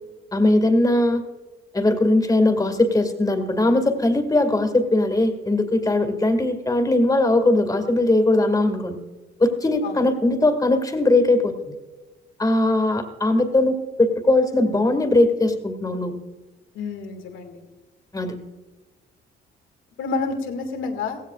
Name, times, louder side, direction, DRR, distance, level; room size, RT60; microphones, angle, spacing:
voice 1, 0.3-1.2 1.7-9.0 9.4-11.8 12.4-16.2 18.1-18.3, left 2 dB, 20° left, 6 dB, 2.1 m, -20 dB
voice 2, 16.7-17.7 20.0-21.2, left 4 dB, 85° left, 4 dB, 2.0 m, -29 dB
16.0 x 16.0 x 2.4 m, 1.2 s
cardioid pair, 90°, 20 cm